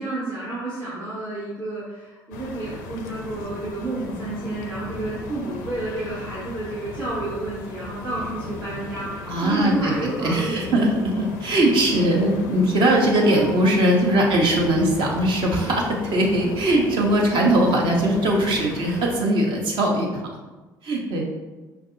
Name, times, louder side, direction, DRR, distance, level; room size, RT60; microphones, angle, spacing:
voice 1, 0.0-10.7 13.2-13.5, right 2 dB, 85° right, -14 dB, 1.3 m, -30 dB
sound 1, 2.3-19.2, left 3 dB, 75° left, 0.4 m, -37 dB
voice 2, 9.3-9.9 10.2-20.1 20.8-21.2, right 1 dB, 55° right, -1 dB, 0.9 m, -20 dB
5.7 x 2.6 x 2.6 m, 1.2 s
figure-of-eight pair, 50°, 10 cm